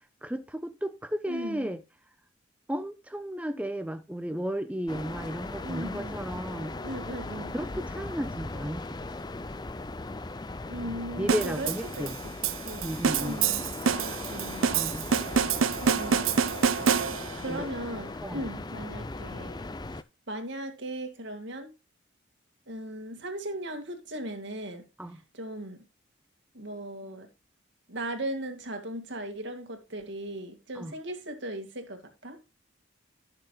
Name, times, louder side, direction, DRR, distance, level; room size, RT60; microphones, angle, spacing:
voice 1, 0.2-1.8 2.7-6.7 7.5-9.1 11.2-12.2 12.8-13.4 14.7-15.1 17.5-17.7 18.2-18.4 25.0-25.2 30.8-30.9, equal, 5° right, 0.8 m, -34 dB
voice 2, 1.3-1.7 5.6-6.2 6.8-7.6 10.7-12.1 12.4-12.9 13.2-13.6 14.0-14.7 15.1-15.4 15.8-16.4 17.4-19.6 20.3-21.7 22.7-24.8 25.3-25.8 26.5-27.3 27.9-32.4, right 1 dB, 60° right, 2.2 m, -38 dB
sound 1, 4.9-20.0, left 2 dB, 20° left, 0.5 m, -38 dB
sound 2, 11.3-17.5, right 6 dB, 90° right, 0.6 m, -27 dB
17.5 x 6.8 x 2.3 m
head